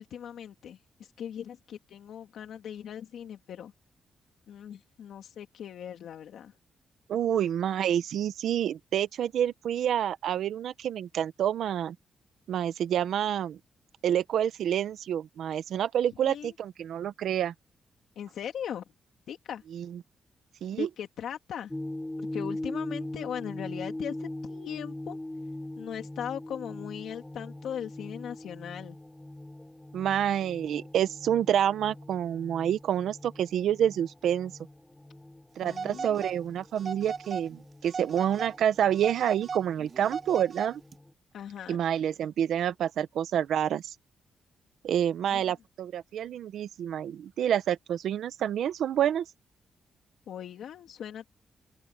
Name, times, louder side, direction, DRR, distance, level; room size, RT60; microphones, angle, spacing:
voice 1, 0.0-3.7 4.5-6.5 16.2-16.5 18.2-18.8 19.3-19.6 20.8-21.7 22.2-25.2 25.8-29.0 35.6-36.2 41.3-41.8 45.3-45.5 50.3-51.2, left 9 dB, 80° left, 2.5 m, -39 dB
voice 2, 7.1-11.9 12.5-13.6 14.0-17.5 19.7-19.9 20.6-20.9 29.9-34.5 35.6-40.8 41.7-43.9 44.8-49.2, right 10 dB, 80° right, 1.1 m, -28 dB
sound 1, 21.7-41.1, left 1 dB, 10° left, 3.8 m, -41 dB
Telephone, 35.7-36.4 36.8-37.5 37.8-38.6 38.9-41.0, right 5 dB, 45° right, 6.4 m, -37 dB
open air
cardioid pair, 115°, 0 cm